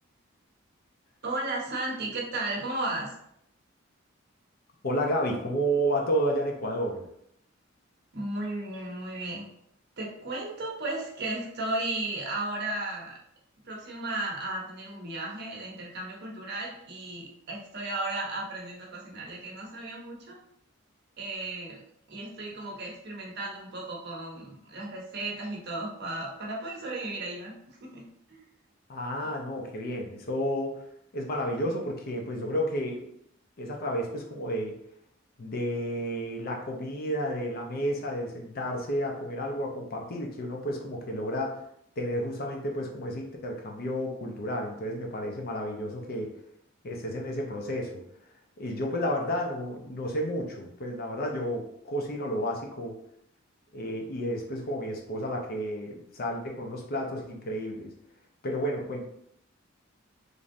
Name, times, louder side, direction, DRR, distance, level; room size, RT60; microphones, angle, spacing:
voice 1, 1.2-3.1 8.1-9.4 10.0-13.2 13.6-20.4 21.2-21.8 22.1-28.0 28.3-28.4, right 2 dB, 55° right, -2 dB, 0.8 m, -35 dB
voice 2, 4.8-7.0 28.9-30.7 31.1-33.0 33.6-34.8 35.4-41.6 42.0-46.3 46.8-48.0 48.6-53.0 53.7-57.9 58.4-59.0, equal, 50° left, 1 dB, 0.5 m, -31 dB
3.2 x 2.6 x 2.5 m, 0.73 s
head